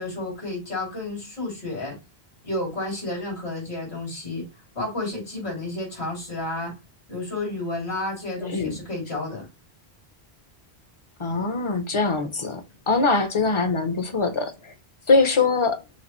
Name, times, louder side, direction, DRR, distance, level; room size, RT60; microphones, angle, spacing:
voice 1, 0.0-2.0 2.4-4.4 4.7-6.7 7.1-9.5, left 2 dB, 75° left, 3.0 m, -31 dB
voice 2, 11.2-12.6 12.9-14.7 15.1-15.8, left 4 dB, 35° left, 0.6 m, -22 dB
5.8 x 2.5 x 3.0 m
omnidirectional pair, 1.1 m